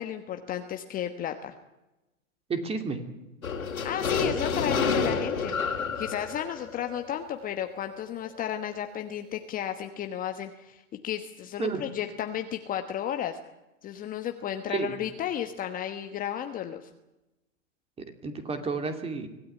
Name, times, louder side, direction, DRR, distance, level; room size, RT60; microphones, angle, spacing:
voice 1, 0.0-1.6 3.8-13.4 13.8-16.9, left 10 dB, 20° left, 7 dB, 1.3 m, -33 dB
voice 2, 2.5-3.0 11.6-11.8 14.7-15.0 18.2-19.3, right 4 dB, 15° right, 8 dB, 2.7 m, -31 dB
sound 1, 3.4-7.5, left 5 dB, 85° left, 3.9 m, -29 dB
25.0 x 16.5 x 9.7 m, 0.99 s
hypercardioid pair, 130°, 41 cm